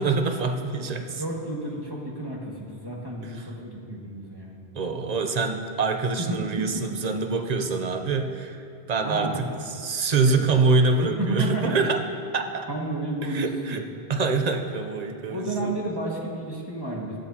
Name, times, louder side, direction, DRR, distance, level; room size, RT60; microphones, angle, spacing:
voice 1, 0.0-1.2 3.3-3.4 4.7-8.6 8.9-12.0 12.3-12.6 13.2-13.8 14.1-15.7, right 3 dB, 45° right, 5 dB, 0.8 m, -25 dB
voice 2, 1.0-4.6 6.2-7.0 9.0-9.4 10.2-10.5 11.0-11.8 12.7-13.8 15.3-17.2, right 2 dB, 20° right, -3 dB, 1.8 m, -31 dB
15.5 x 12.5 x 2.9 m, 2.4 s
omnidirectional pair, 1.1 m